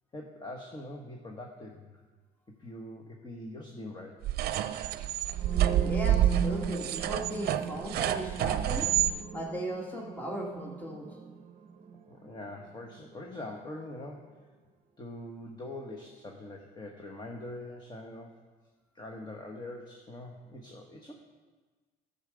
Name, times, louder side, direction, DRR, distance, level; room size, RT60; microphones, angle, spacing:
voice 1, 0.1-2.0 2.6-4.2 12.1-14.4 15.0-18.4 18.9-21.1, left 1 dB, 25° left, 1 dB, 1.3 m, -43 dB
sound 1, 4.2-9.1, right 12 dB, 70° right, 0.6 m, -28 dB
sound 2, 5.3-13.2, right 5 dB, 35° right, 0.9 m, -38 dB
voice 2, 5.8-8.9 9.3-11.1, right 1 dB, 10° left, -1 dB, 1.8 m, -37 dB
12.5 x 7.2 x 5.1 m, 1.3 s
cardioid pair, 110°, 17 cm